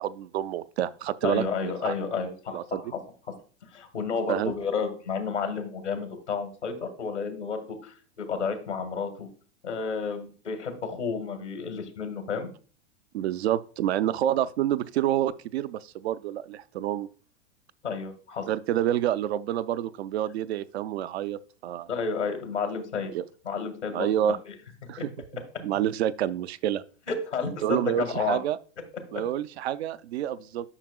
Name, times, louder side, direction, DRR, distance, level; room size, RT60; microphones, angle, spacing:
voice 1, 0.0-1.9 2.5-2.8 4.3-4.5 13.1-17.1 18.5-21.9 23.1-23.2 23.9-24.4 24.9-25.1 25.6-26.8 27.6-28.6 29.1-30.7, right 11 dB, 70° right, 0.5 m, -28 dB
voice 2, 1.2-3.0 3.7-9.3 9.6-12.5 17.8-18.5 21.9-23.1 23.5-24.1 25.0-25.1 27.1-28.4 29.1-29.2, left 5 dB, 85° left, 1.6 m, -31 dB
9.8 x 5.9 x 2.3 m
hypercardioid pair, 95°, 34 cm